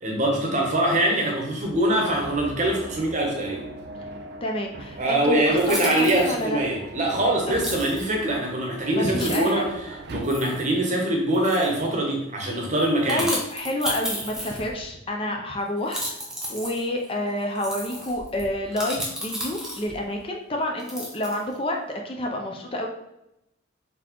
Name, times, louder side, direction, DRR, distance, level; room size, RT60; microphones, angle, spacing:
voice 1, 0.0-3.7 5.0-9.7 10.1-13.2 15.3-15.4, right 1 dB, 35° right, 1 dB, 0.8 m, -23 dB
sound 1, 1.6-10.2, right 2 dB, 55° right, 0.4 m, -41 dB
voice 2, 4.4-6.6 7.5-7.6 8.9-9.8 13.1-16.2 16.5-22.9, left 1 dB, 25° left, 1 dB, 0.5 m, -29 dB
sound 2, 5.0-5.1 5.5-6.4 7.6-8.0 8.7-8.8 9.1-9.6 10.2-10.7 11.3-11.8 12.8-14.9 15.8-20.0 20.8-21.6, equal, 5° right, 0.8 m, -33 dB
4.0 x 3.5 x 2.9 m, 0.86 s
head